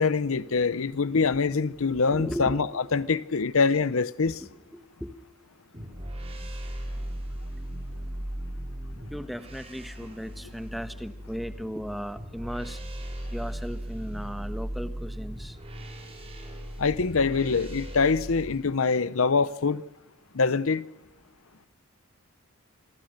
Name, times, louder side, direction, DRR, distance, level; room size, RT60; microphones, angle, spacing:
voice 1, 0.0-2.7 2.9-4.4 16.8-19.8 20.3-20.8, left 4 dB, 65° left, 0.8 m, -24 dB
voice 2, 1.8-3.1 4.4-5.1 9.1-12.8 13.3-15.6, equal, ahead, 1.2 m, -37 dB
sound 1, 5.7-18.6, equal, 25° right, 5.1 m, -37 dB
27.5 x 21.0 x 6.6 m
head